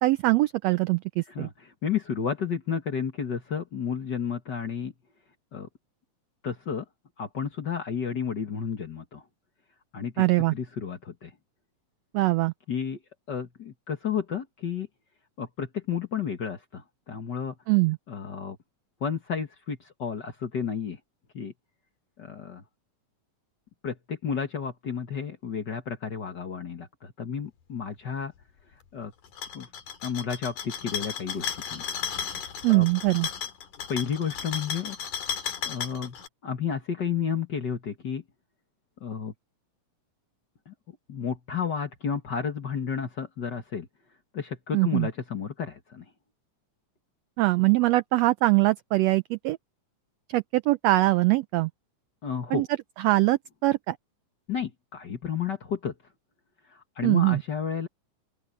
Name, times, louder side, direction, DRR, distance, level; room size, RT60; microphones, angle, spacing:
voice 1, 0.0-1.5 10.2-10.5 12.1-12.5 17.7-18.0 32.6-33.3 44.7-45.1 47.4-49.6 50.3-51.7 52.5-52.7 53.0-53.9 57.0-57.4, right 19 dB, 85° right, 1.5 m, -22 dB
voice 2, 1.3-4.9 5.5-5.7 6.4-6.8 7.2-9.2 9.9-10.2 10.5-11.3 12.7-13.0 13.3-14.9 15.4-17.5 18.1-18.6 19.0-21.0 21.3-21.5 22.2-22.6 23.8-28.3 28.9-29.1 29.5-29.7 30.0-32.0 32.6-32.8 33.9-35.0 35.6-36.1 36.4-38.2 39.0-39.3 40.7-40.8 41.1-43.9 44.3-46.0 52.2-52.6 54.5-55.9 57.0-57.9, left 7 dB, 45° left, 1.7 m, -32 dB
sound 1, 29.2-36.3, left 7 dB, 80° left, 3.4 m, -34 dB
open air
omnidirectional pair, 3.5 m